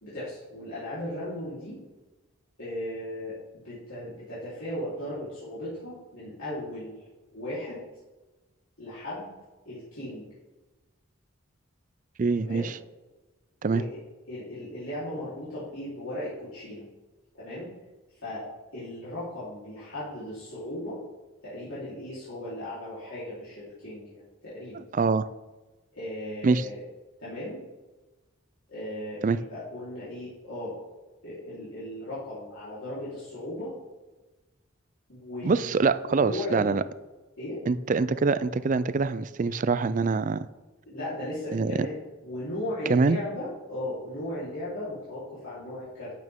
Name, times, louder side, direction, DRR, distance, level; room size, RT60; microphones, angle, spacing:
voice 1, 0.0-1.8 2.6-7.0 7.3-7.8 8.8-9.3 9.7-10.3 12.4-12.7 13.7-14.0 14.3-16.8 17.4-17.7 18.2-18.4 18.7-21.0 21.4-24.8 25.9-26.8 27.2-27.6 28.7-30.8 31.2-33.7 35.1-35.7 36.2-36.8 37.4-37.6 40.8-42.0 42.2-46.1, left 1 dB, 75° left, -12 dB, 3.7 m, -36 dB
voice 2, 12.2-12.8 13.6-13.8 24.9-25.3 26.4-26.7 29.2-29.4 35.4-36.8 37.7-40.5 41.5-41.8 42.9-43.2, right 4 dB, 40° right, 15 dB, 0.3 m, -24 dB
12.0 x 8.8 x 3.6 m, 1.2 s
head